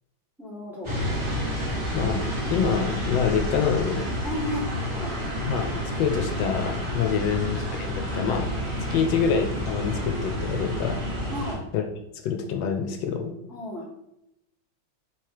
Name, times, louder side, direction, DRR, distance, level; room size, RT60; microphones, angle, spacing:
voice 1, 0.4-0.9 4.2-5.1 11.3-11.6 13.5-13.9, equal, ahead, -7 dB, 1.1 m, -34 dB
sound 1, 0.8-11.5, left 1 dB, 15° right, 1.3 m, -29 dB
voice 2, 1.9-4.1 5.5-8.5 8.9-11.0 11.7-11.8 12.2-13.3, left 6 dB, 80° left, 5 dB, 1.3 m, -26 dB
3.4 x 3.2 x 4.6 m, 0.81 s
omnidirectional pair, 2.1 m